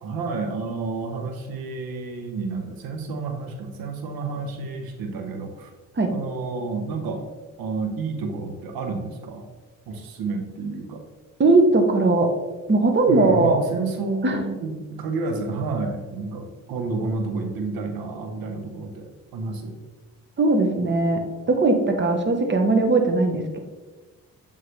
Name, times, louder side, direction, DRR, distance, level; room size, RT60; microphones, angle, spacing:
voice 1, 0.0-5.7 6.1-7.2 7.6-9.5 9.9-11.0 13.1-19.1 19.3-19.8, right 3 dB, 80° right, 4 dB, 0.9 m, -30 dB
voice 2, 11.4-12.3 12.7-13.6 14.2-14.4 20.4-21.2 21.5-23.6, right 2 dB, 30° right, 4 dB, 1.0 m, -19 dB
7.8 x 3.7 x 3.2 m, 1.3 s
supercardioid pair, 65°, 35 cm